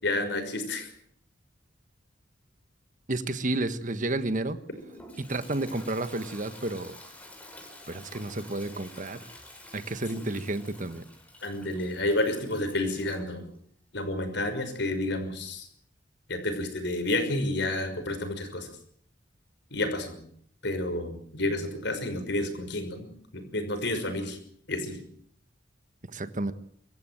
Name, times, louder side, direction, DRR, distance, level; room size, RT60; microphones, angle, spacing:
voice 1, 0.0-0.9 10.1-10.2 11.4-13.5 13.9-15.7 16.3-18.7 19.7-20.2 20.6-24.4 24.7-25.0, left 1 dB, 65° left, 7 dB, 5.9 m, -30 dB
voice 2, 3.1-4.6 5.2-7.0 7.9-9.2 9.7-11.0 26.1-26.5, right 2 dB, 45° right, 12 dB, 1.4 m, -31 dB
Toilet flush, 4.7-13.3, left 1 dB, 10° left, 5.5 m, -49 dB
25.0 x 15.0 x 9.1 m, 0.65 s
head